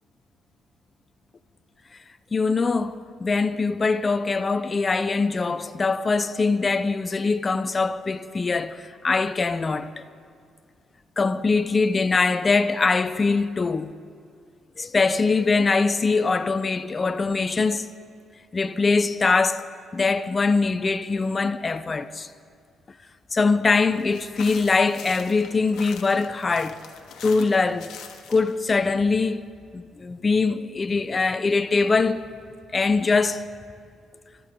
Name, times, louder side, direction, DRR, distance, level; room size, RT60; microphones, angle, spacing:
voice 1, 2.3-10.0 11.2-13.9 14.8-17.9 18.5-19.7 19.9-22.3 23.3-26.8 27.2-27.9 28.3-29.4 29.7-32.3 32.7-33.4, left 4 dB, 30° left, 0.7 m, -22 dB
sound 1, 23.9-28.6, left 7 dB, 80° left, 1.3 m, -43 dB
25.5 x 14.0 x 3.8 m
cardioid pair, 90°, 0 cm